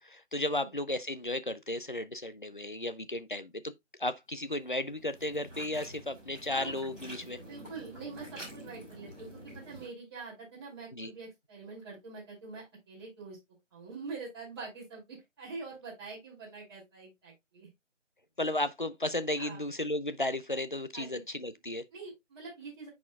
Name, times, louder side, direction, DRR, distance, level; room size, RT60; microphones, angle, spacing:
voice 1, 0.0-3.7 4.0-7.4 10.9-11.1 18.4-21.8, left 1 dB, 45° left, 0.4 m, -34 dB
sound 1, 4.4-9.9, equal, ahead, 3.8 m, -48 dB
voice 2, 7.5-13.4 13.7-17.7 19.4-19.6 20.9-21.2 21.9-22.9, right 4 dB, 20° right, 2.7 m, -45 dB
10.0 x 4.3 x 2.3 m
figure-of-eight pair, 175°, 37 cm